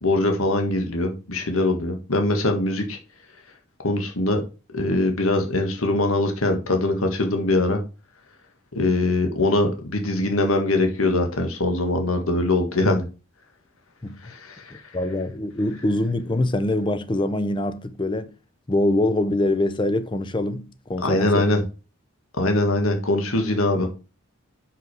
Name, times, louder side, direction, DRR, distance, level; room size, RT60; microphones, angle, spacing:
voice 1, 0.0-3.0 3.8-4.4 4.7-7.8 8.7-13.0 14.2-14.7 21.0-21.6 22.4-23.9, left 2 dB, 75° left, 1.5 m, -22 dB
voice 2, 14.0-14.3 14.7-18.3 18.7-21.4, left 1 dB, 20° left, 0.5 m, -24 dB
6.3 x 5.9 x 4.7 m
head